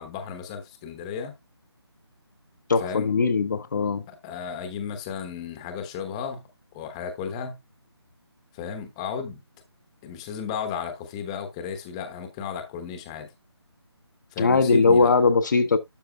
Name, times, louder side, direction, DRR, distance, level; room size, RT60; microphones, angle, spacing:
voice 1, 0.0-1.3 2.8-3.1 4.1-6.4 6.7-7.6 8.5-9.4 10.0-13.3 14.3-15.1, left 6 dB, 15° left, 1.0 m, -34 dB
voice 2, 2.7-4.0 14.4-15.8, left 4 dB, 40° left, 0.8 m, -20 dB
12.5 x 5.3 x 2.3 m
figure-of-eight pair, 160°, 14 cm